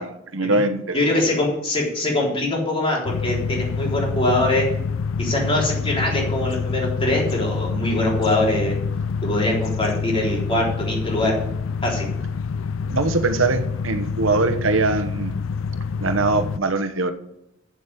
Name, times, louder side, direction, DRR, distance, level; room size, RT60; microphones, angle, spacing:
voice 1, 0.0-1.0 12.9-15.3 16.0-17.1, right 3 dB, 85° right, 9 dB, 1.1 m, -22 dB
voice 2, 0.9-4.7 5.2-8.7 9.2-11.3 11.8-12.1, left 1 dB, 30° left, -2 dB, 3.8 m, -23 dB
sound 1, 3.0-16.6, left 5 dB, 85° left, 0.4 m, -27 dB
8.0 x 7.6 x 8.2 m, 0.81 s
head